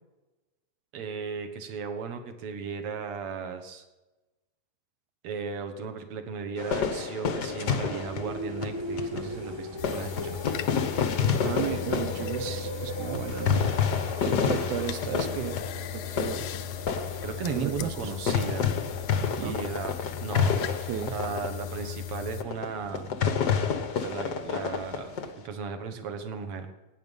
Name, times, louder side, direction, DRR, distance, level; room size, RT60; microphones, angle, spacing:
voice 1, 0.9-3.8 5.2-10.4 17.2-18.7 19.4-19.9 20.2-23.1 24.0-25.1 25.4-26.7, right 5 dB, 55° right, 7 dB, 2.0 m, -35 dB
sound 1, 6.6-9.3 9.8-18.0 18.3-21.5 21.9-22.0 22.4-22.7 22.9-25.3, left 6 dB, 60° left, 1.1 m, -29 dB
sound 2, 7.5-25.3, right 1 dB, 25° right, 0.5 m, -41 dB
sound 3, 9.8-22.4, left 12 dB, 80° left, 1.3 m, -38 dB
voice 2, 11.4-13.7 14.2-15.6 15.9-16.5 17.6-17.9 19.4-19.6 20.6-21.2, right 11 dB, 85° right, 13 dB, 2.3 m, -34 dB
17.5 x 9.5 x 5.4 m, 1.1 s
omnidirectional pair, 3.4 m